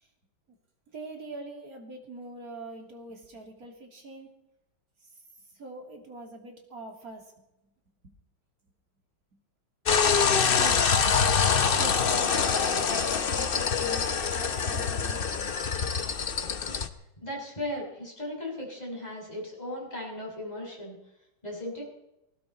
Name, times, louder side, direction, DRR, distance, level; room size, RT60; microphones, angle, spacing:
voice 1, 0.9-4.3 5.5-7.3 10.5-11.1 11.6-15.5, right 2 dB, 45° right, 2 dB, 3.2 m, -43 dB
sound 1, 9.9-16.9, left 6 dB, 60° left, 0.5 m, -25 dB
voice 2, 17.2-21.0 21.4-21.8, left 1 dB, 20° left, -2 dB, 6.3 m, -36 dB
19.0 x 17.5 x 4.3 m, 0.87 s
omnidirectional pair, 2.3 m